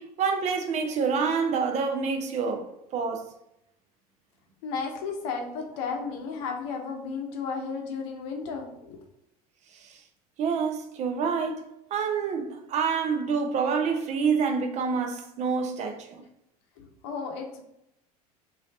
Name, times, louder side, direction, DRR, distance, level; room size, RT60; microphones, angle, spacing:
voice 1, 0.0-3.3 9.7-10.0 10.4-11.7 11.9-16.2, right 5 dB, 35° right, 0.6 m, -27 dB
voice 2, 4.6-9.0 16.8-17.6, left 5 dB, 55° left, 0.8 m, -34 dB
3.2 x 2.7 x 3.7 m
figure-of-eight pair, 70°, 20 cm